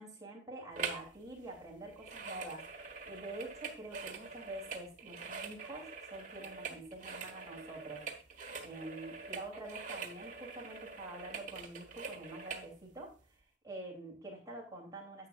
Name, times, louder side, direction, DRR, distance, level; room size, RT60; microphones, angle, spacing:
voice 1, 0.0-2.7 3.1-8.0 8.6-13.1 13.6-15.3, right 2 dB, 20° right, -1 dB, 3.1 m, -46 dB
sound 1, 0.8-1.1 1.4-12.7 13.2-13.3, right 5 dB, 45° right, 1.5 m, -45 dB
10.0 x 8.9 x 2.5 m, 0.35 s
head